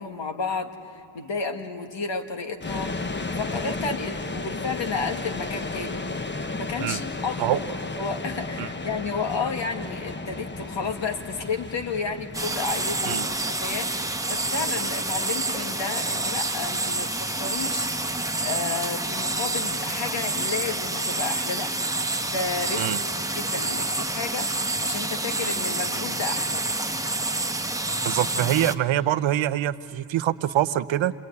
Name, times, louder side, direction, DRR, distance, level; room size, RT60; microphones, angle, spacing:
voice 1, 0.0-2.9 3.3-6.1 6.6-7.6 8.0-13.3 13.6-17.9 18.4-21.7 22.3-22.9 23.1-26.6, left 4 dB, 65° left, 5 dB, 2.1 m, -32 dB
sound 1, 2.6-19.6, left 3 dB, 25° left, 1.1 m, -35 dB
sound 2, 12.3-28.8, right 2 dB, 5° right, 1.1 m, -28 dB
voice 2, 28.0-31.1, right 12 dB, 75° right, 14 dB, 0.8 m, -24 dB
29.0 x 21.0 x 9.7 m, 2.8 s
cardioid pair, 55°, 47 cm